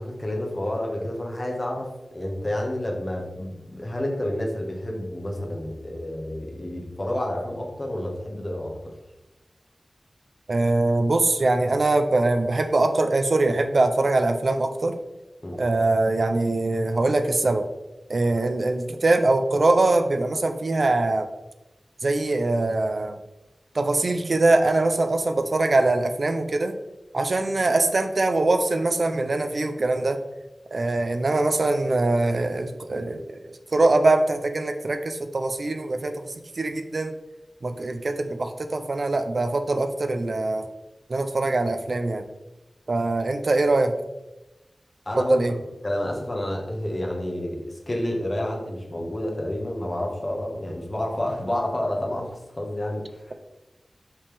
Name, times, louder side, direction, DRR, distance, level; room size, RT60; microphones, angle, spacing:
voice 1, 0.0-8.9 15.4-15.7 45.0-45.4 45.8-53.3, left 1 dB, 35° left, 0 dB, 1.3 m, -29 dB
voice 2, 10.5-15.0 15.6-17.7 18.1-21.3 22.0-23.2 23.7-26.7 27.1-30.2 30.7-37.1 37.6-40.7 41.1-42.2 42.9-43.9 45.2-45.5, right 2 dB, 60° right, 7 dB, 0.5 m, -23 dB
5.6 x 5.2 x 3.4 m, 0.98 s
wide cardioid pair, 80°, 0 cm